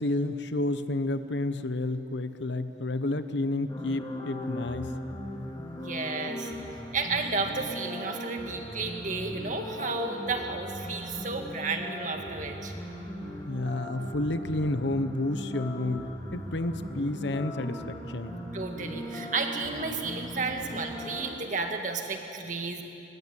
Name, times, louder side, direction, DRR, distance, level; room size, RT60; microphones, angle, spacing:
voice 1, 0.0-4.9 13.5-18.4, left 2 dB, 70° left, 11 dB, 1.0 m, -30 dB
sound 1, 3.7-21.3, equal, 20° left, 3.0 m, -39 dB
voice 2, 5.8-6.5 6.9-12.7 18.5-22.8, right 3 dB, 40° right, 4 dB, 2.0 m, -32 dB
22.0 x 21.5 x 8.9 m, 2.9 s
head